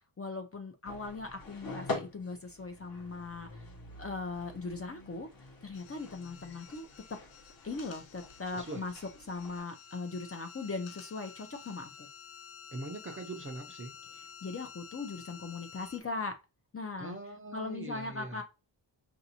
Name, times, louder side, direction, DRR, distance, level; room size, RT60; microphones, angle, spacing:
voice 1, 0.2-3.6 4.0-5.3 5.6-7.2 7.6-8.9 9.3-12.1 14.4-16.3 16.7-17.1 17.5-18.4, left 3 dB, 30° left, 0.6 m, -39 dB
sound 1, 0.8-9.6, left 2 dB, 45° left, 0.9 m, -45 dB
sound 2, 5.7-16.0, left 7 dB, 80° left, 0.6 m, -52 dB
voice 2, 8.5-8.9 12.7-13.9 17.0-18.4, right 2 dB, 25° right, 0.6 m, -42 dB
5.1 x 2.6 x 2.7 m
wide cardioid pair, 145°, 46 cm